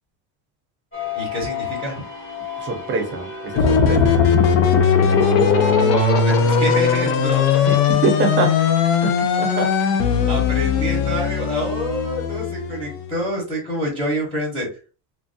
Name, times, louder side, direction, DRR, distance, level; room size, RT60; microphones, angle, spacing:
sound 1, 0.9-7.9, left 7 dB, 30° left, 1.2 m, -33 dB
voice 1, 1.1-2.0 5.1-7.6 10.3-14.7, left 1 dB, ahead, 0.9 m, -26 dB
voice 2, 2.6-4.2 7.7-8.8 9.0-10.1, right 3 dB, 30° right, 0.7 m, -25 dB
sound 2, 3.5-13.1, left 6 dB, 75° left, 0.7 m, -18 dB
3.1 x 2.3 x 2.6 m
cardioid pair, 165°, 41 cm